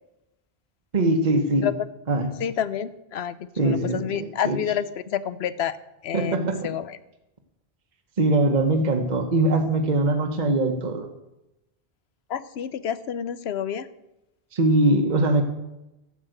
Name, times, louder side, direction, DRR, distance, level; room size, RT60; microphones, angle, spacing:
voice 1, 0.9-1.7 2.1-2.3 3.6-4.6 6.1-6.7 8.2-11.1 14.5-15.4, right 2 dB, 45° right, 4 dB, 1.2 m, -22 dB
voice 2, 2.4-5.8 6.0-7.0 12.3-13.9, left 9 dB, 75° left, 15 dB, 0.9 m, -29 dB
12.0 x 7.5 x 7.8 m, 0.92 s
omnidirectional pair, 1.1 m